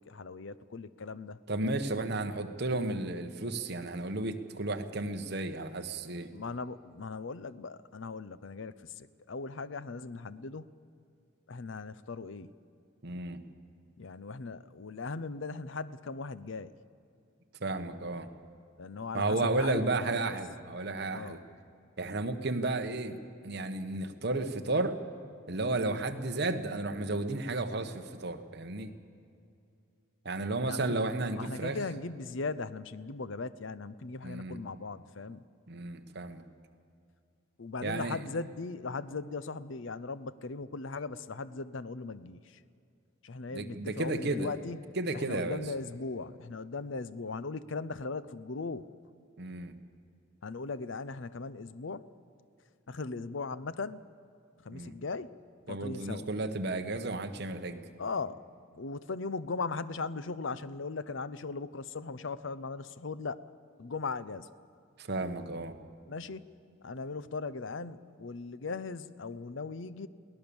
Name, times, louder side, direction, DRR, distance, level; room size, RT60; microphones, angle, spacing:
voice 1, 0.0-1.4 6.3-10.7 11.5-12.5 14.0-16.7 18.8-20.4 21.1-21.4 25.8-26.0 30.6-31.0 31.3-35.4 37.6-42.6 43.2-44.9 45.1-48.9 50.4-52.1 52.9-54.0 54.6-55.3 55.7-56.3 58.0-58.4 58.7-63.4 63.8-64.5 66.1-66.4 66.8-70.1, left 4 dB, 60° left, 16 dB, 0.6 m, -38 dB
voice 2, 1.5-6.3 13.0-13.4 17.6-18.3 19.1-21.4 22.0-25.0 25.5-28.9 30.2-31.8 34.2-34.6 35.7-36.4 37.8-38.2 43.5-44.5 45.0-45.6 49.4-49.7 54.7-55.0 55.7-57.8 65.0-65.7, right 2 dB, 50° right, 6 dB, 1.2 m, -33 dB
22.5 x 17.0 x 7.1 m, 2.5 s
head